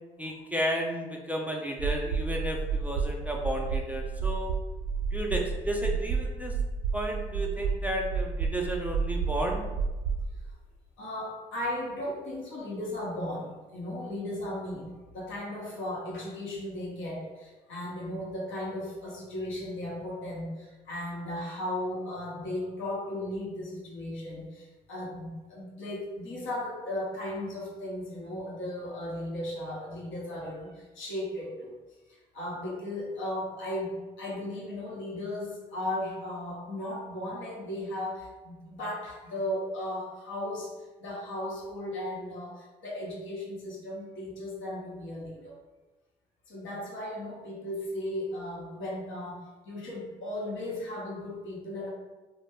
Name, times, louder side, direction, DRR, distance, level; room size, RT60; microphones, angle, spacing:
voice 1, 0.2-4.5 5.1-6.6 6.9-9.6, right 1 dB, 5° right, 0 dB, 0.4 m, -32 dB
sound 1, 1.8-10.3, right 5 dB, 70° right, 0.5 m, -31 dB
voice 2, 11.0-31.7 32.1-40.7 41.0-45.6 46.5-51.9, left 1 dB, 70° left, -3 dB, 0.8 m, -36 dB
2.2 x 2.1 x 3.3 m, 1.2 s
hypercardioid pair, 50°, 21 cm